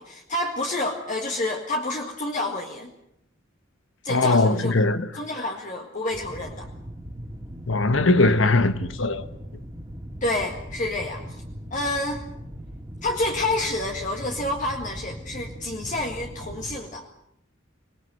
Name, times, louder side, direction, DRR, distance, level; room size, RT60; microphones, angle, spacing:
voice 1, 0.0-2.9 4.0-4.7 5.1-6.7 10.2-11.4 11.7-12.2 13.0-17.1, left 2 dB, 40° left, 1.9 m, -28 dB
voice 2, 4.1-5.1 7.7-9.2, left 2 dB, 65° left, 1.3 m, -20 dB
sound 1, 6.1-16.8, equal, 15° right, 2.6 m, -39 dB
26.0 x 19.5 x 7.9 m
head